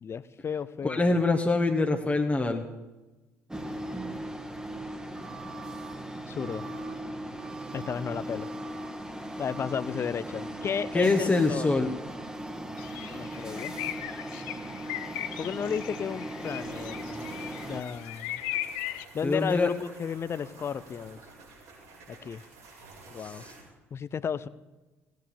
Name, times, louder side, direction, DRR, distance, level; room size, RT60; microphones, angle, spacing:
voice 1, 0.0-1.2 6.3-6.6 7.7-8.5 9.4-11.7 13.1-13.8 15.4-17.3 17.6-18.4 19.1-21.2 22.1-22.4 23.1-23.4 23.9-24.5, left 7 dB, 35° left, 17 dB, 0.6 m, -33 dB
voice 2, 0.8-2.6 10.9-11.9 19.2-19.7 23.2-23.5, left 3 dB, 20° left, 3 dB, 1.3 m, -25 dB
sound 1, 3.5-17.8, right 1 dB, 10° right, 1.6 m, -38 dB
sound 2, 12.8-19.1, left 14 dB, 70° left, 0.7 m, -38 dB
sound 3, 16.4-23.6, right 3 dB, 75° right, 6.1 m, -51 dB
17.0 x 9.5 x 7.0 m, 1.1 s
figure-of-eight pair, 50°, 7 cm